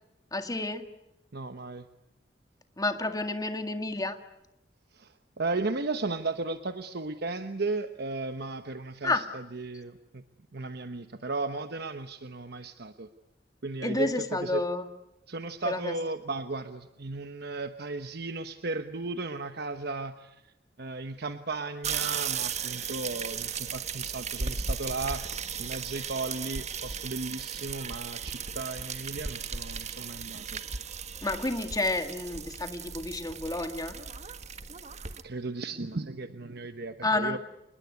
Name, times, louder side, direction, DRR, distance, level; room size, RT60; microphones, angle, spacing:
voice 1, 0.3-0.9 2.8-4.2 9.0-9.2 13.8-14.8 15.6-15.9 31.2-34.0 37.0-37.4, left 2 dB, 20° left, 7 dB, 1.9 m, -30 dB
voice 2, 1.3-1.9 4.9-10.2 10.5-13.1 13.6-14.6 15.3-20.5 20.8-25.2 25.6-30.6 35.2-37.4, right 3 dB, 60° right, 9 dB, 1.1 m, -35 dB
sound 1, 21.8-35.2, right 6 dB, 40° right, 1.5 m, -36 dB
27.5 x 21.0 x 9.6 m, 0.94 s
head